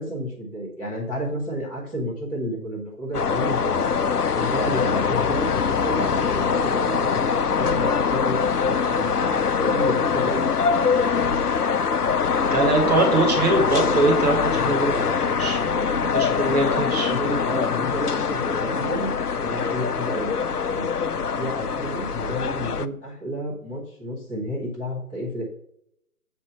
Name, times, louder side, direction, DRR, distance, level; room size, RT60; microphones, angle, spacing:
voice 1, 0.0-3.7 4.3-10.7 14.4-14.7 16.9-21.0 21.3-25.4, equal, 5° right, -13 dB, 0.8 m, -31 dB
sound 1, 3.1-22.9, left 6 dB, 85° left, 0.6 m, -23 dB
voice 2, 12.5-17.1, right 2 dB, 25° right, 0 dB, 2.1 m, -23 dB
8.2 x 4.3 x 5.5 m, 0.73 s
figure-of-eight pair, 145°, 45 cm